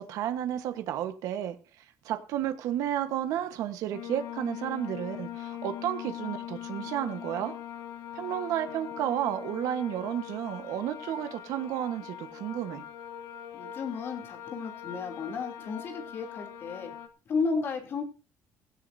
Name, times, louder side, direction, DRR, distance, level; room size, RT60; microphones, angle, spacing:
voice 1, 0.0-7.6 8.1-12.8, right 11 dB, 70° right, 1.2 m, -32 dB
sound 1, 3.9-17.1, left 11 dB, 70° left, 1.6 m, -41 dB
voice 2, 13.5-16.9 17.3-18.1, left 4 dB, 40° left, 3.0 m, -33 dB
17.0 x 16.5 x 2.7 m
cardioid pair, 170°, 6 cm